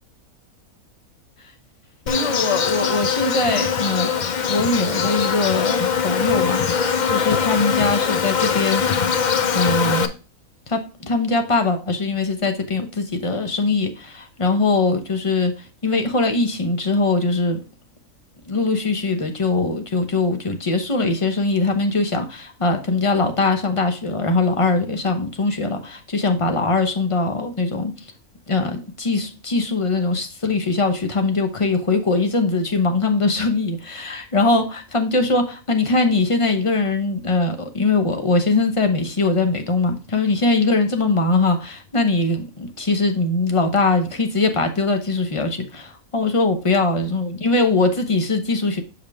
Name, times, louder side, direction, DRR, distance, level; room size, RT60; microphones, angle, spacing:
Insect, 2.1-10.1, left 6 dB, 70° left, 0.4 m, -22 dB
voice 1, 2.1-4.1 4.5-8.8 9.5-10.1 10.7-17.6 18.5-27.9 28.5-48.8, left 3 dB, 30° left, 6 dB, 0.7 m, -21 dB
6.9 x 5.3 x 3.5 m, 0.34 s
omnidirectional pair, 1.6 m